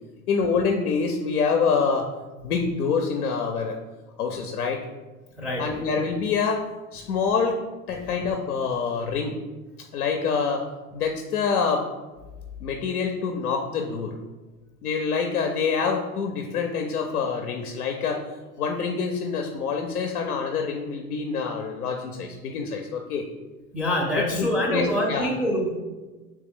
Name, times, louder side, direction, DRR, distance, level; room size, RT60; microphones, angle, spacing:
voice 1, 0.3-2.1 2.4-3.8 4.2-4.9 5.6-6.6 6.9-7.6 7.9-9.3 9.9-10.7 10.9-11.9 12.6-14.2 14.8-18.2 18.6-23.3 24.1-25.3, left 5 dB, 90° left, 3 dB, 0.5 m, -26 dB
voice 2, 5.4-5.8 23.7-25.7, equal, ahead, -4 dB, 0.4 m, -25 dB
3.2 x 3.2 x 3.5 m, 1.2 s
hypercardioid pair, 95°, 43 cm